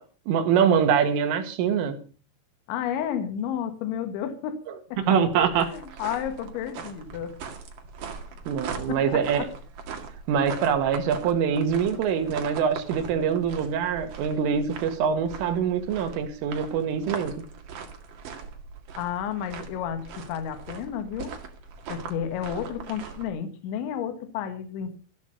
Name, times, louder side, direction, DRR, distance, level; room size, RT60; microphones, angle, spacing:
voice 1, 0.3-2.0 5.0-5.7 8.5-9.5 10.3-17.3, right 7 dB, 90° right, 8 dB, 4.3 m, -24 dB
voice 2, 2.7-4.6 4.9-5.2 5.5-7.4 8.9-9.5 19.0-21.3 21.9-24.9, left 9 dB, 75° left, 8 dB, 3.7 m, -32 dB
sound 1, 4.9-23.3, right 6 dB, 50° right, 3.1 m, -40 dB
14.5 x 12.5 x 5.4 m, 0.39 s
omnidirectional pair, 5.6 m